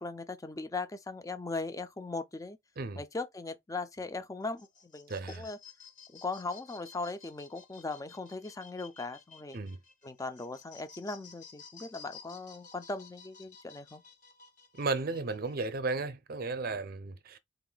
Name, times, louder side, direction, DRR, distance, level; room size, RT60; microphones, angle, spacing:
voice 1, 0.0-2.6 3.0-5.6 6.1-9.6 10.0-14.0, left 3 dB, 15° left, 0.5 m, -39 dB
sound 1, 4.4-15.7, left 6 dB, 40° left, 1.2 m, -54 dB
voice 2, 5.1-5.5 9.5-9.8 14.7-17.4, right 3 dB, 50° right, 0.6 m, -34 dB
4.0 x 2.6 x 3.9 m
head